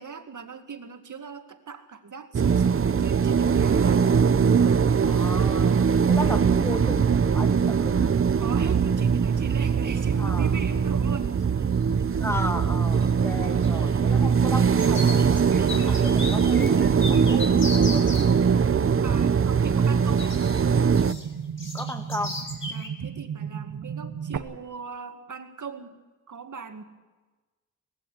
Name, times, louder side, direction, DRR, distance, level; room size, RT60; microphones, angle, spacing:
voice 1, 0.0-4.1 4.6-4.9 6.1-6.5 8.4-11.9 19.0-20.4 22.7-26.0 26.3-26.8, right 6 dB, 70° right, 7 dB, 2.1 m, -39 dB
sound 1, 2.3-21.1, right 6 dB, 45° right, 0.6 m, -21 dB
sound 2, 4.5-4.7 5.0-5.6 7.6-7.7 8.3-8.4 8.6-9.0 9.3-9.9 10.4-10.5 11.6-12.0 12.3-18.3 20.2-22.9, left 2 dB, 40° left, 4.2 m, -37 dB
voice 2, 5.1-8.3 10.2-10.5 12.2-15.2 15.7-18.3 21.7-22.4, left 1 dB, 10° left, 7 dB, 1.9 m, -35 dB
sound 3, 14.4-24.4, right 7 dB, 90° right, 1.2 m, -35 dB
19.5 x 16.0 x 9.7 m, 1.2 s
wide cardioid pair, 95°, 32 cm